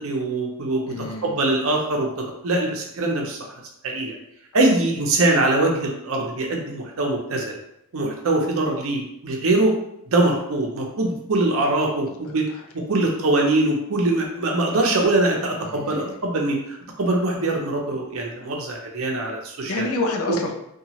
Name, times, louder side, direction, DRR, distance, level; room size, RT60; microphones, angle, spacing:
voice 1, 0.0-0.9 1.2-3.4 3.8-4.1 4.5-7.5 7.9-9.7 10.1-12.5 12.7-16.6 17.0-19.8, right 2 dB, 70° right, 1 dB, 0.6 m, -22 dB
voice 2, 0.9-1.3 12.2-12.7 15.6-16.2 19.7-20.5, left 2 dB, 80° left, 3 dB, 0.5 m, -29 dB
2.8 x 2.3 x 2.9 m, 0.78 s
head